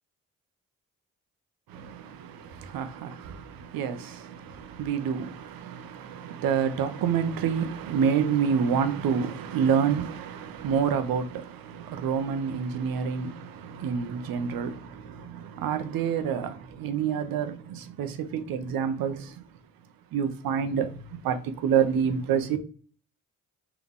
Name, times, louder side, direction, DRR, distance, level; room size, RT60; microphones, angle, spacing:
voice 1, 1.7-19.4 20.1-22.6, right 7 dB, 75° right, 0.7 m, -28 dB
3.9 x 2.9 x 3.6 m
supercardioid pair, 50°, 35 cm